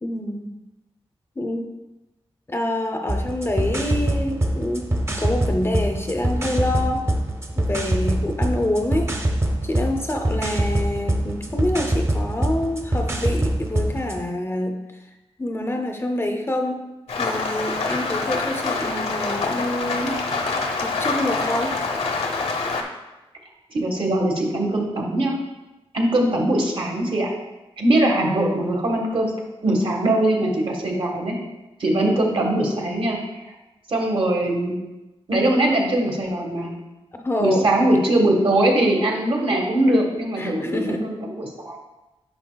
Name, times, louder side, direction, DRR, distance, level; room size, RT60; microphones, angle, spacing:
voice 1, 0.0-0.5 1.4-1.7 2.5-4.9 5.2-7.1 7.6-9.1 9.6-14.9 15.4-16.8 17.2-20.2 20.8-21.8 37.2-37.7 40.4-41.1, left 1 dB, 25° left, 4 dB, 0.5 m, -26 dB
sound 1, 3.1-14.2, right 1 dB, 25° right, 0.7 m, -24 dB
Rain, 17.1-22.8, left 3 dB, 85° left, 0.8 m, -25 dB
voice 2, 23.7-25.3 25.9-27.3 27.8-29.3 29.6-31.3 31.8-33.2 33.5-33.6 33.9-34.7 35.3-36.7 37.4-41.8, right 1 dB, 60° right, 0 dB, 1.4 m, -21 dB
9.5 x 5.6 x 2.3 m, 1.0 s
wide cardioid pair, 130°, 10 cm